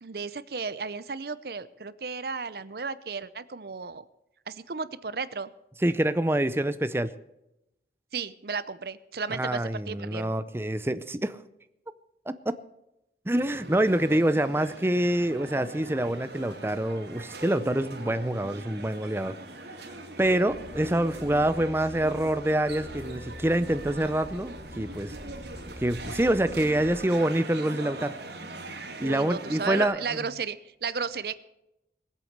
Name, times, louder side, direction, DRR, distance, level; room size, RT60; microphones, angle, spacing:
voice 1, 0.0-4.0 4.5-5.5 8.1-10.3 29.0-31.4, right 5 dB, 55° right, 16 dB, 0.7 m, -34 dB
voice 2, 5.8-7.1 9.3-11.4 12.3-12.5 13.3-19.4 20.2-25.1 25.8-28.2 29.0-30.0, right 1 dB, 15° right, 12 dB, 0.5 m, -26 dB
sound 1, 13.3-29.8, right 2 dB, 70° right, 2.7 m, -42 dB
sound 2, 20.2-26.9, left 1 dB, 5° left, 2.1 m, -45 dB
20.0 x 8.3 x 6.6 m, 0.87 s
head